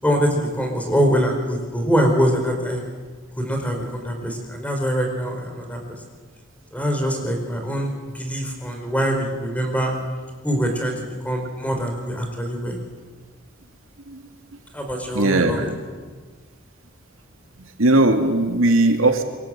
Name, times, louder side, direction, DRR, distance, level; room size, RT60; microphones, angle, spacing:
voice 1, 0.0-2.8 3.4-5.8 6.7-9.9 10.4-12.8 14.7-15.7, equal, 5° left, 3 dB, 4.8 m, -23 dB
voice 2, 15.1-15.7 17.8-19.2, right 2 dB, 90° right, 5 dB, 2.6 m, -18 dB
27.0 x 23.5 x 7.7 m, 1.5 s
head